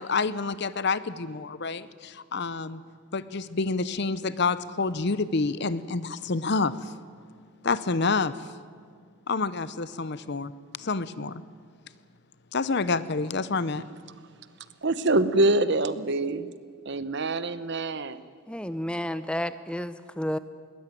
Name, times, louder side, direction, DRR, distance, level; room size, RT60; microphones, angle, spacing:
voice 1, 0.0-2.8 3.1-6.9 7.6-8.4 9.3-10.5 10.8-11.4 12.5-13.9, left 4 dB, 50° left, 16 dB, 0.7 m, -28 dB
voice 2, 14.8-16.5 16.8-18.3, right 2 dB, 50° right, 14 dB, 0.9 m, -25 dB
voice 3, 18.5-20.4, equal, 5° left, 13 dB, 0.6 m, -31 dB
21.5 x 19.5 x 9.2 m, 2.1 s
head